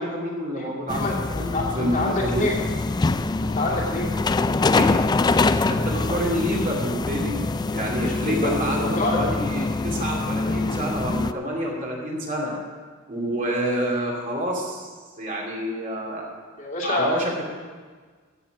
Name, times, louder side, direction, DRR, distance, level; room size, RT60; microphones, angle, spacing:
voice 1, 0.0-2.5 4.7-5.0 5.7-7.4 7.7-12.5 13.1-14.9 15.2-16.3 16.8-17.4, equal, 40° right, -2 dB, 2.6 m, -28 dB
voice 2, 0.5-2.6 3.4-4.1 8.0-9.3 10.4-10.5 16.6-17.3, left 2 dB, 40° left, -4 dB, 2.5 m, -27 dB
sound 1, 0.9-11.3, left 3 dB, 20° left, 0.3 m, -24 dB
15.0 x 7.3 x 6.0 m, 1.5 s
head